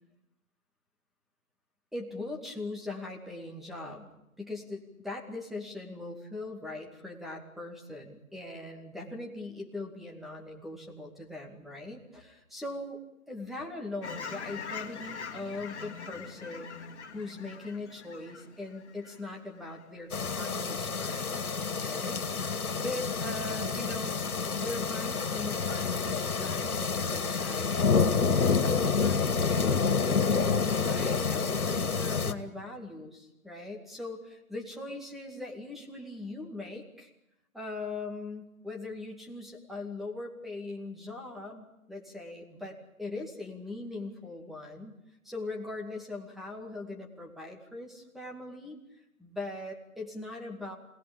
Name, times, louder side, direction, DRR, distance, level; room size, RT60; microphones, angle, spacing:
voice 1, 1.9-4.1 4.4-13.0 13.3-16.9 17.1-21.4 21.9-24.2 24.5-37.1 37.5-45.0 45.2-48.8 49.2-50.8, left 2 dB, ahead, 0 dB, 2.3 m, -41 dB
Fowl / Chirp tweet, 14.0-19.8 20.3-20.5, left 6 dB, 50° left, 2.4 m, -43 dB
sound 1, 20.1-32.3, left 5 dB, 80° left, 2.3 m, -28 dB
27.0 x 19.5 x 8.9 m, 0.87 s
figure-of-eight pair, 150°, 43 cm